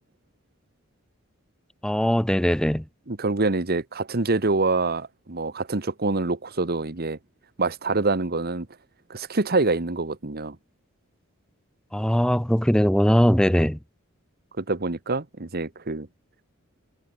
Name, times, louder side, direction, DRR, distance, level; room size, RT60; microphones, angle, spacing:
voice 1, 1.8-2.8 11.9-13.8, equal, 5° left, 1.0 m, -20 dB
voice 2, 3.1-7.2 7.6-8.7 9.1-10.6 14.6-16.1, right 3 dB, 50° right, 1.3 m, -25 dB
head